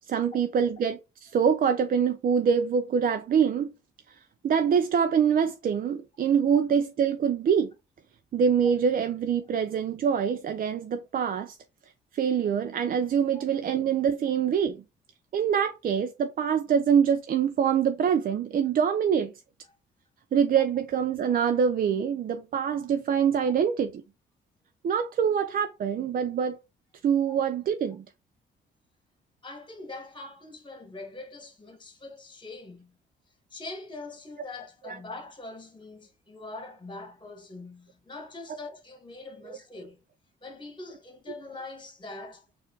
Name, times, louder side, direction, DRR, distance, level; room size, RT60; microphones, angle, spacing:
voice 1, 0.1-3.7 4.1-4.2 4.4-7.7 8.3-11.6 12.1-14.8 15.3-19.3 20.3-24.0 24.8-26.6 27.0-28.0 34.8-35.0, right 7 dB, 45° right, 0.4 m, -25 dB
voice 2, 29.4-33.0 33.5-40.0 40.4-42.4, left 2 dB, 25° left, 1.4 m, -43 dB
4.2 x 2.5 x 3.8 m
cardioid pair, 90°, 20 cm